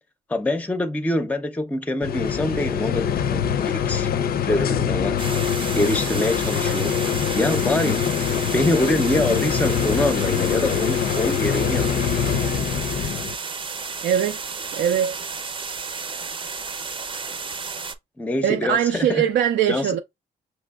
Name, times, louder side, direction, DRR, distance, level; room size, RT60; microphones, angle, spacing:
voice 1, 0.3-4.1 4.5-5.2 5.7-6.9 7.3-8.0 8.5-12.0 18.2-19.3 19.7-20.0, left 1 dB, 10° left, 0.5 m, -25 dB
sound 1, 2.0-13.4, left 8 dB, 60° left, 0.5 m, -24 dB
sound 2, 5.2-17.9, right 4 dB, 30° right, 0.7 m, -32 dB
voice 2, 14.0-14.4 14.7-15.2 18.4-20.0, right 9 dB, 85° right, 0.5 m, -21 dB
5.9 x 3.1 x 2.3 m
cardioid pair, 100°, 17 cm